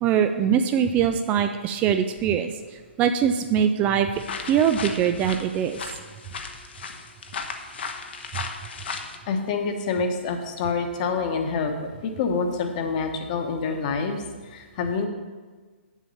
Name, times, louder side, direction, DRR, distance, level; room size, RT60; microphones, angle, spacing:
voice 1, 0.0-2.5 3.0-4.1 4.5-5.8, right 8 dB, 20° right, 8 dB, 0.4 m, -22 dB
sound 1, 4.1-9.2, left 5 dB, 60° left, 1.0 m, -36 dB
voice 2, 9.3-11.7 12.0-15.1, left 5 dB, 40° left, 5 dB, 1.2 m, -27 dB
8.3 x 7.3 x 5.6 m, 1.4 s
figure-of-eight pair, 125°, 7 cm